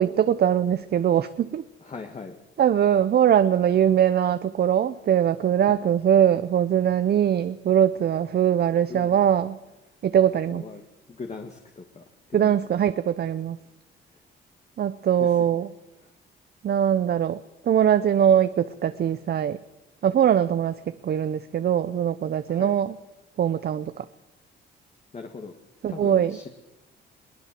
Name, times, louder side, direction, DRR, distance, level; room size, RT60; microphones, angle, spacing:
voice 1, 0.0-1.6 2.6-9.6 10.0-10.6 12.3-13.6 14.8-15.7 16.6-17.4 17.6-19.6 20.0-20.7 21.0-23.0 23.4-24.0 25.8-26.4, right 9 dB, 55° right, 12 dB, 0.8 m, -21 dB
voice 2, 1.8-2.4 5.6-5.8 8.9-9.3 10.5-10.8 11.1-12.0 12.3-12.6 15.2-15.5 16.0-16.1 22.5-22.8 25.1-25.5 25.9-26.5, left 4 dB, 35° left, 4 dB, 1.9 m, -39 dB
22.0 x 18.0 x 7.7 m, 1.0 s
cardioid pair, 90°, 20 cm